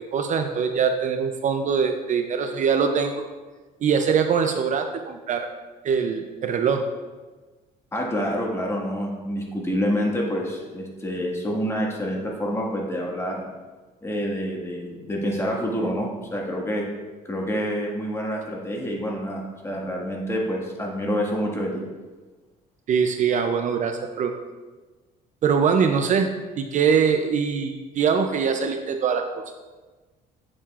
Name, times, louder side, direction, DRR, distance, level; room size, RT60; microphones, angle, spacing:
voice 1, 0.1-3.2 3.8-5.5 5.8-6.8 22.9-24.3 25.4-26.3 26.6-29.3, right 6 dB, 45° right, 6 dB, 0.5 m, -22 dB
voice 2, 7.9-13.4 14.0-16.8 17.3-21.7, equal, 15° left, -2 dB, 1.7 m, -27 dB
8.7 x 7.3 x 2.4 m, 1.3 s
cardioid pair, 110°, 17 cm